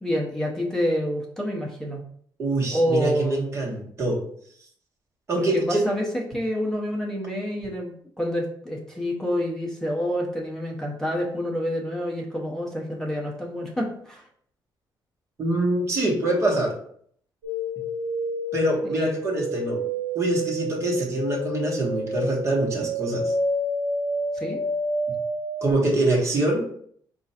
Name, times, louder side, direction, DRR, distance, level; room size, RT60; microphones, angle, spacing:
voice 1, 0.0-2.0 2.7-3.5 5.4-14.2 19.0-19.1 24.3-24.6, equal, 5° left, -1 dB, 0.8 m, -28 dB
voice 2, 2.4-4.2 5.3-5.9 15.4-16.7 18.5-19.8 20.1-23.3 25.6-26.6, right 1 dB, 35° right, -2 dB, 1.2 m, -24 dB
sound 1, 17.4-25.7, equal, 90° right, 1.2 m, -29 dB
4.4 x 2.4 x 4.1 m, 0.63 s
cardioid pair, 180°, 8 cm